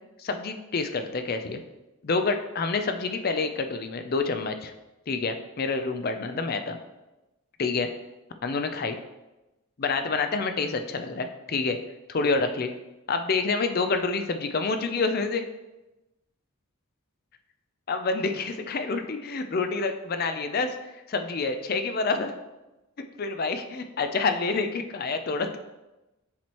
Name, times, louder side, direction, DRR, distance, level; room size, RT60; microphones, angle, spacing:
voice 1, 0.2-1.6 2.0-4.7 5.1-6.8 7.6-7.9 8.4-9.0 9.8-11.8 12.1-12.7 13.1-15.4 17.9-20.8 21.1-22.3 23.2-25.6, left 4 dB, 45° left, 7 dB, 0.4 m, -27 dB
7.2 x 4.5 x 3.0 m, 1.0 s
head